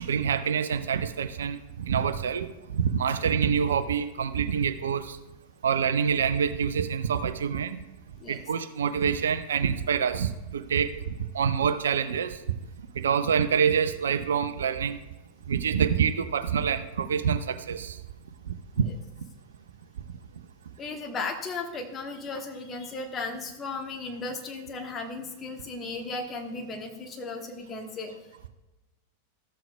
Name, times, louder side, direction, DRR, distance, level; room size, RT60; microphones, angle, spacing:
voice 1, 0.0-5.2 5.6-7.8 8.3-12.4 12.9-15.0 15.5-18.0 18.8-18.9, right 7 dB, 65° right, 11 dB, 0.5 m, -26 dB
voice 2, 20.8-28.1, left 3 dB, 25° left, 3 dB, 1.3 m, -35 dB
14.0 x 7.6 x 2.3 m, 1.0 s
figure-of-eight pair, 90°, 0 cm